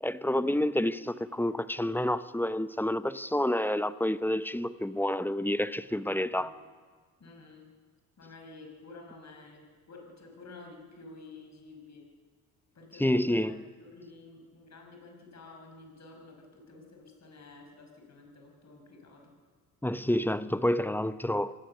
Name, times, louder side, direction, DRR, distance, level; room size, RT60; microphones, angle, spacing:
voice 1, 0.0-6.5 13.0-13.6 19.8-21.5, left 1 dB, 5° left, 0.8 m, -29 dB
voice 2, 7.2-7.7 8.2-12.0 12.7-13.5 13.8-19.3, left 3 dB, 45° left, 5.6 m, -51 dB
25.5 x 16.5 x 6.8 m
hypercardioid pair, 50°, 40 cm